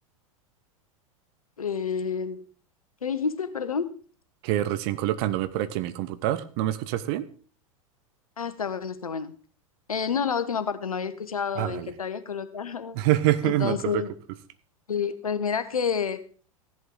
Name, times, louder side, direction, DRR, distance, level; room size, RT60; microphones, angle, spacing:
voice 1, 1.6-2.4 3.0-4.0 8.4-9.3 9.9-13.0 13.4-14.1 14.9-16.2, left 6 dB, 75° left, 12 dB, 1.2 m, -29 dB
voice 2, 4.4-7.3 11.6-11.9 12.9-14.0, right 14 dB, 45° right, 13 dB, 1.1 m, -26 dB
15.5 x 11.0 x 3.7 m, 0.41 s
figure-of-eight pair, 90°, 18 cm